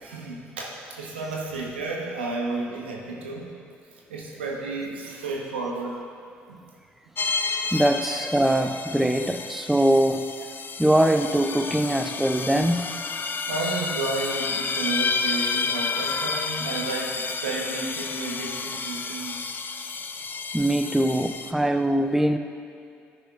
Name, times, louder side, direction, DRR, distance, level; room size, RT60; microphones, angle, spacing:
voice 1, 0.0-3.5 4.1-6.0 6.5-6.6 7.7-7.8 13.5-19.5, right 3 dB, 90° right, -2 dB, 1.2 m, -32 dB
sound 1, 7.2-21.5, left 4 dB, 35° left, 0.6 m, -30 dB
voice 2, 7.7-10.3 10.8-12.9 20.5-22.4, right 1 dB, 5° right, 7 dB, 0.6 m, -22 dB
12.5 x 9.8 x 2.5 m, 2.4 s
hypercardioid pair, 55°, 6 cm